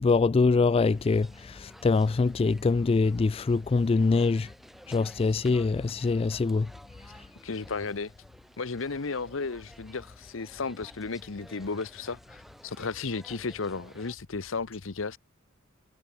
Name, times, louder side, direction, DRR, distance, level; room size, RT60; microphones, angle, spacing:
voice 1, 0.0-4.5 4.9-6.7, left 4 dB, 30° left, 0.3 m, -24 dB
sound 1, 0.8-14.2, equal, ahead, 3.6 m, -53 dB
voice 2, 7.4-8.1 8.6-15.2, left 4 dB, 70° left, 0.9 m, -34 dB
head